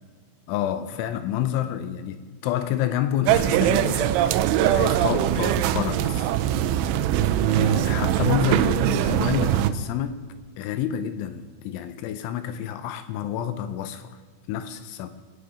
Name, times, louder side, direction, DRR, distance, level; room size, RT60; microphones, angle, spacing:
voice 1, 0.5-4.3 4.6-6.3 6.7-7.0 7.4-10.3 10.6-14.1 14.5-15.1, left 11 dB, 80° left, 2.9 m, -29 dB
sound 1, 3.3-9.7, right 11 dB, 80° right, 2.9 m, -22 dB
22.5 x 9.2 x 4.9 m
omnidirectional pair, 5.7 m